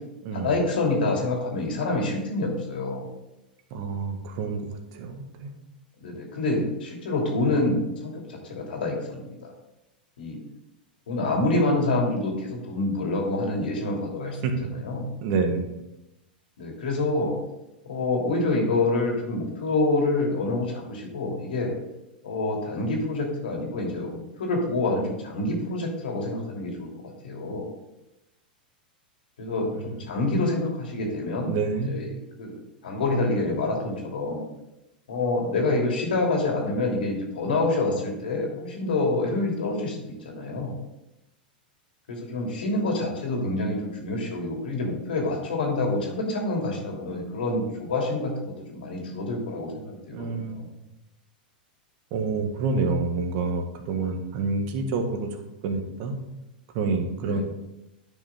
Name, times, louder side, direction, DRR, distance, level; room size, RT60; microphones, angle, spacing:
voice 1, 0.3-3.1 6.0-9.5 10.2-10.4 11.1-15.1 16.6-17.4 17.8-21.7 22.2-26.9 27.2-27.7 29.4-31.6 31.8-32.1 32.4-32.5 32.8-34.4 35.1-40.8 42.1-50.6 57.2-57.4, left 2 dB, 75° left, 0 dB, 2.7 m, -27 dB
voice 2, 3.7-5.5 14.4-14.5 15.2-15.7 29.7-29.9 31.4-31.9 50.1-50.5 52.1-56.1 56.7-57.4, right 4 dB, 50° right, 5 dB, 1.6 m, -28 dB
10.5 x 5.9 x 3.7 m, 0.91 s
hypercardioid pair, 100°, 5 cm